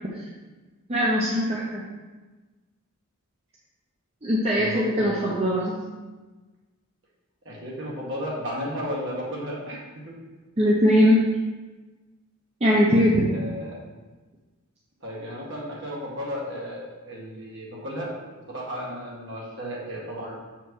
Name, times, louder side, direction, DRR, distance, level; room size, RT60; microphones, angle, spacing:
voice 1, 0.9-1.8 4.2-5.8 10.6-11.3 12.6-13.3, equal, 30° right, -4 dB, 0.7 m, -21 dB
voice 2, 4.5-5.2 7.5-10.1 13.3-13.8 15.0-18.1 18.5-20.3, equal, 55° right, -4 dB, 1.8 m, -34 dB
6.7 x 4.5 x 4.7 m, 1.2 s
head